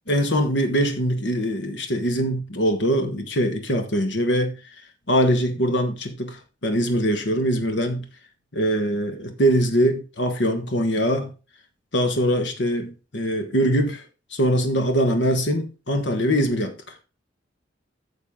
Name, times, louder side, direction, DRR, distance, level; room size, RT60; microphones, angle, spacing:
voice 1, 0.1-4.6 5.1-8.0 8.5-11.3 11.9-14.0 14.3-16.7, equal, 70° left, 1.4 m, -22 dB
9.3 x 6.9 x 3.7 m
head